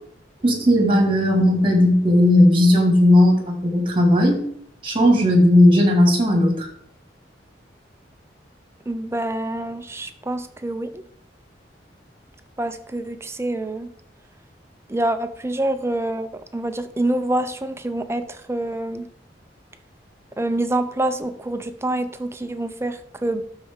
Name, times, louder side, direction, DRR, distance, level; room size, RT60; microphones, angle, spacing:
voice 1, 0.4-4.4 4.8-6.7, left 1 dB, 30° right, 2 dB, 2.1 m, -16 dB
voice 2, 8.9-11.0 12.6-13.9 14.9-19.1 20.4-23.4, right 1 dB, 15° right, 9 dB, 0.5 m, -26 dB
12.0 x 4.4 x 3.7 m, 0.65 s
head